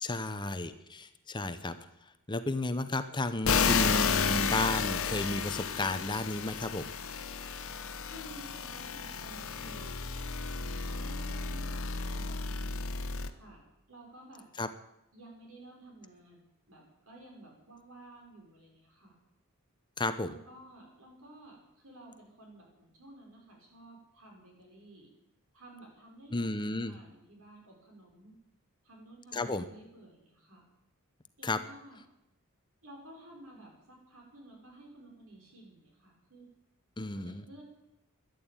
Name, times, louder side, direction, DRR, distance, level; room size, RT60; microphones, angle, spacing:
voice 1, 0.0-1.8 2.3-6.9 14.6-14.7 20.0-20.3 26.3-27.0 29.3-29.6 31.4-31.6 37.0-37.4, left 2 dB, 20° left, 10 dB, 0.8 m, -33 dB
sound 1, 3.5-13.3, left 5 dB, 65° left, 1.0 m, -32 dB
voice 2, 8.0-10.0 10.8-14.5 15.1-19.2 20.2-25.1 25.5-28.4 28.8-30.7 31.4-32.0 32.8-36.5 37.1-37.6, right 1 dB, 70° right, 0 dB, 5.9 m, -53 dB
13.0 x 11.0 x 8.8 m, 0.87 s
head